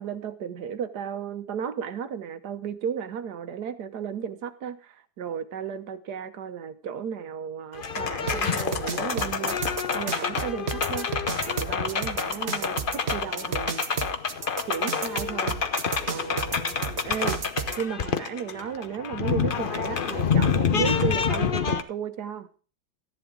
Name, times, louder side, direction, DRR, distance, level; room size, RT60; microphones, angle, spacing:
voice 1, 0.0-13.9 14.7-15.6 16.1-16.8 17.0-17.4 17.8-22.5, right 7 dB, 60° right, 10 dB, 1.3 m, -34 dB
sound 1, 7.7-21.8, left 6 dB, 60° left, 0.5 m, -28 dB
sound 2, 8.3-17.8, right 6 dB, 45° right, 0.9 m, -32 dB
14.0 x 10.5 x 3.8 m, 0.37 s
omnidirectional pair, 2.2 m